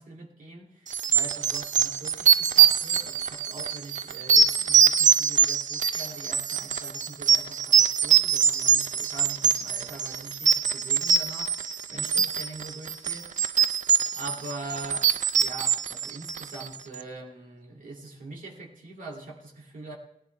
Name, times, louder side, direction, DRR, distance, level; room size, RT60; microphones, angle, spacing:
voice 1, 0.0-13.6 14.1-15.1 15.4-20.0, right 2 dB, 90° right, -1 dB, 2.0 m, -43 dB
sound 1, 0.9-16.7, right 7 dB, 70° right, 0.4 m, -23 dB
17.0 x 13.5 x 3.3 m, 0.77 s
cardioid pair, 70°, 13 cm